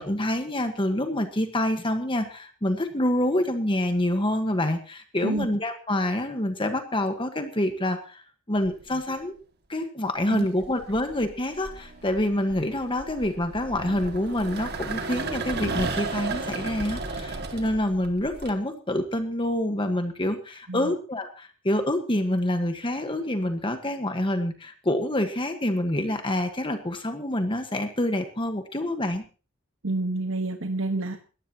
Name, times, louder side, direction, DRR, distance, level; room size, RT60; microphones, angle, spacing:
voice 1, 0.0-9.3 9.7-29.2, left 1 dB, 25° left, 6 dB, 1.5 m, -27 dB
sound 1, 8.6-9.1 10.2-18.5, right 3 dB, 50° right, 2.1 m, -34 dB
voice 2, 29.8-31.2, right 2 dB, 70° right, 5 dB, 1.5 m, -28 dB
20.5 x 15.0 x 3.0 m, 0.36 s
head